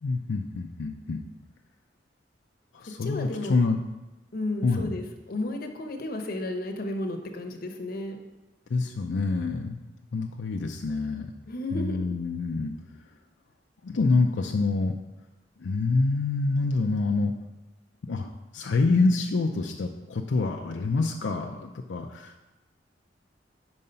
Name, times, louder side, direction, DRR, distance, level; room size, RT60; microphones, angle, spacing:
voice 1, 0.0-1.2 2.7-3.8 4.6-5.0 8.7-9.8 10.1-11.3 11.7-12.7 13.8-14.9 15.6-17.3 18.0-18.3 18.5-22.4, left 3 dB, 80° left, 2 dB, 0.5 m, -26 dB
voice 2, 3.0-3.6 4.3-8.2 11.4-12.0, left 1 dB, 55° left, 5 dB, 0.8 m, -33 dB
5.3 x 4.7 x 5.5 m, 1.1 s
head